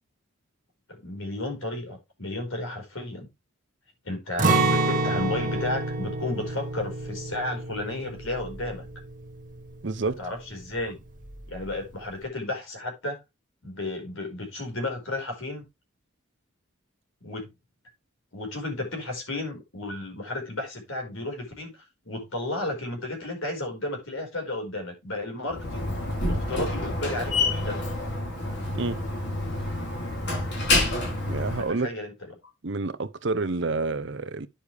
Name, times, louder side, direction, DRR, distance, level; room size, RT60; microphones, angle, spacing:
voice 1, 1.0-3.3 4.0-8.8 10.2-10.9 11.5-13.2 13.6-15.6 17.2-17.5 18.3-25.9 26.3-27.8 31.5-32.1, left 2 dB, 70° left, 5.0 m, -33 dB
Acoustic guitar, 4.4-10.3 10.6-10.8 11.2-11.7, right 3 dB, 35° right, 1.8 m, -28 dB
voice 2, 9.8-10.2 28.7-29.0 31.3-31.9 32.6-34.5, right 3 dB, 55° right, 0.7 m, -28 dB
Slam, 25.5-31.7, left 2 dB, 55° left, 4.2 m, -28 dB
10.0 x 6.7 x 3.4 m
head